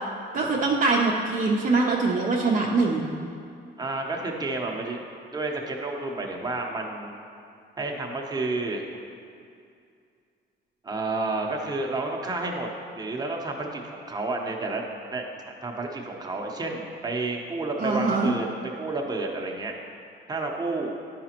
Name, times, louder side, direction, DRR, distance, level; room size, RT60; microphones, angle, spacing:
voice 1, 0.3-3.1 17.8-18.3, right 3 dB, 45° right, -2 dB, 0.7 m, -23 dB
voice 2, 3.8-5.0 5.3-7.1 7.8-8.8 10.8-14.8 15.1-19.7 20.3-21.0, right 2 dB, 20° right, 0 dB, 0.9 m, -30 dB
10.0 x 5.0 x 3.0 m, 2.4 s
cardioid pair, 90°, 20 cm